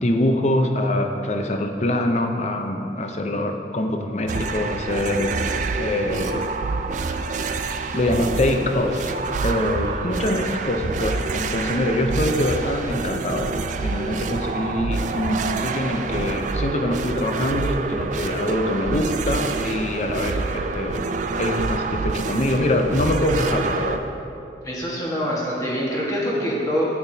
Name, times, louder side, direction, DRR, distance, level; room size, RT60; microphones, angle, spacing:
voice 1, 0.0-6.5 7.9-9.1 9.4-21.1 21.4-24.0, left 1 dB, 35° left, 4 dB, 0.6 m, -24 dB
sound 1, 4.3-24.0, right 4 dB, 40° right, 0.3 m, -27 dB
voice 2, 24.6-26.8, equal, 20° left, -6 dB, 1.4 m, -25 dB
9.4 x 8.9 x 2.7 m, 2.7 s
head